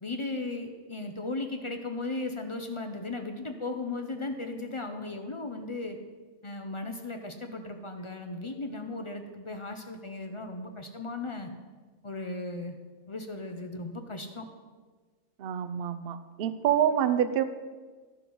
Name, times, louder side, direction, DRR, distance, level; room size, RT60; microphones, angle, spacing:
voice 1, 0.0-6.0 6.4-11.5 12.0-12.7 13.1-14.5, left 2 dB, 40° left, 6 dB, 0.4 m, -36 dB
voice 2, 15.4-17.4, right 9 dB, 55° right, 10 dB, 0.7 m, -27 dB
12.0 x 6.1 x 5.4 m, 1.4 s
omnidirectional pair, 1.5 m